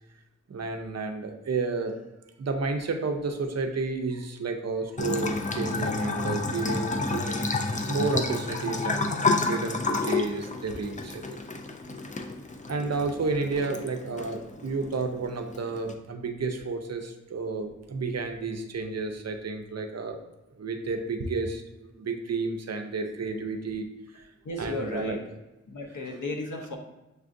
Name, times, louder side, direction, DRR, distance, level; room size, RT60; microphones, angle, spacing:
voice 1, 0.5-2.0 2.4-7.5 7.9-11.4 12.7-20.2 20.6-23.9 24.1-24.2 24.6-25.2 26.0-26.2, right 3 dB, 60° right, 5 dB, 0.5 m, -31 dB
Bathtub (filling or washing) / Trickle dribble, 5.0-15.9, left 3 dB, 25° left, 0.3 m, -30 dB
voice 2, 24.4-25.2 25.7-26.8, left 2 dB, 85° left, 2 dB, 0.7 m, -34 dB
6.5 x 2.4 x 2.5 m, 0.98 s
wide cardioid pair, 65°, 30 cm